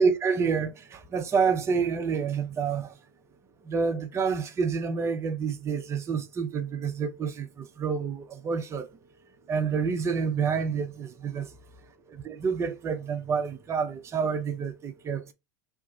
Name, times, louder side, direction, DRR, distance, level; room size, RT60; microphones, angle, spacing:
voice 1, 0.0-2.9 3.7-8.9 9.5-11.5 12.1-15.3, right 5 dB, 25° right, 0.6 m, -28 dB
2.9 x 2.3 x 2.5 m
figure-of-eight pair, 80°, 10 cm